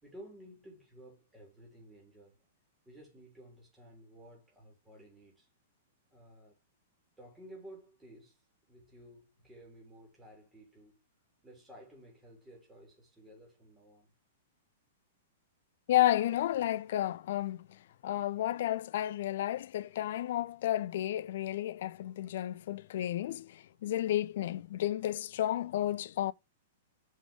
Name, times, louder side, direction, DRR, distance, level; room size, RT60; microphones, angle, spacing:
voice 1, 0.0-2.5 2.9-5.5 6.1-6.6 7.2-11.0 11.4-14.1, right 1 dB, 10° right, 3.6 m, -54 dB
voice 2, 15.9-26.3, left 13 dB, 55° left, 0.4 m, -32 dB
6.0 x 5.1 x 5.1 m
figure-of-eight pair, 105°, 0 cm